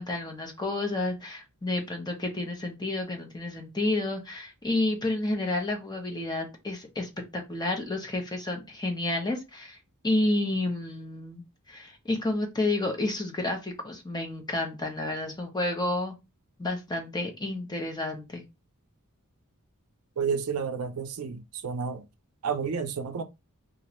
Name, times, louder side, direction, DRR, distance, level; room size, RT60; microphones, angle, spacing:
voice 1, 0.0-9.8 10.0-16.1 16.6-18.4, left 2 dB, 20° left, 0.6 m, -30 dB
voice 2, 20.2-22.0 22.4-23.2, right 6 dB, 75° right, 0.5 m, -30 dB
2.4 x 2.2 x 2.8 m
head